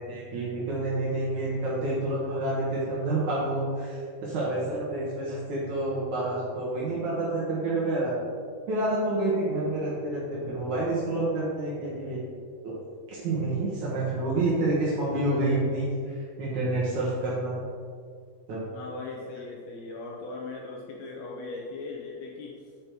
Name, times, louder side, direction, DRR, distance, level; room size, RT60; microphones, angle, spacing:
voice 1, 0.1-8.1 8.7-12.2 12.6-12.7 13.1-17.6 18.5-18.6, right 2 dB, 85° right, -7 dB, 1.6 m, -28 dB
voice 2, 18.7-22.6, left 3 dB, 90° left, -2 dB, 2.1 m, -39 dB
8.6 x 5.2 x 4.5 m, 2.1 s
omnidirectional pair, 5.5 m